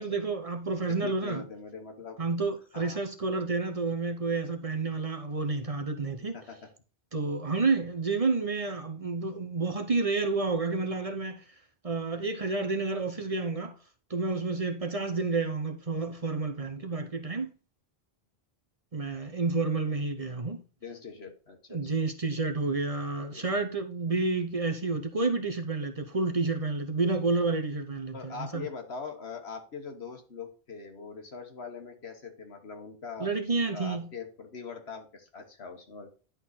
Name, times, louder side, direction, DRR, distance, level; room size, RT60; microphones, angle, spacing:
voice 1, 0.0-1.4 2.2-6.3 7.1-11.4 11.8-13.7 14.1-17.5 18.9-20.6 21.7-28.7 33.2-34.0, right 3 dB, 35° right, 1.0 m, -30 dB
voice 2, 0.9-2.2 2.7-3.0 6.3-6.7 20.8-21.8 23.3-23.5 28.1-33.3 33.7-36.1, left 5 dB, 80° left, 1.8 m, -42 dB
11.0 x 4.1 x 4.1 m
omnidirectional pair, 1.1 m